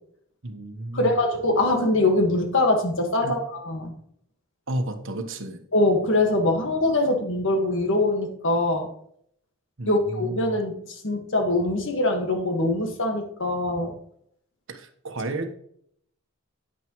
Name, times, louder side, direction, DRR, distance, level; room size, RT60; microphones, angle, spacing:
voice 1, 0.4-1.1 3.2-3.4 4.7-5.7 9.8-10.6 14.7-15.5, right 1 dB, 65° right, 6 dB, 1.2 m, -32 dB
voice 2, 0.9-3.9 5.7-8.9 9.8-13.9, left 2 dB, 65° left, 4 dB, 1.7 m, -23 dB
9.4 x 9.3 x 3.1 m, 0.67 s
head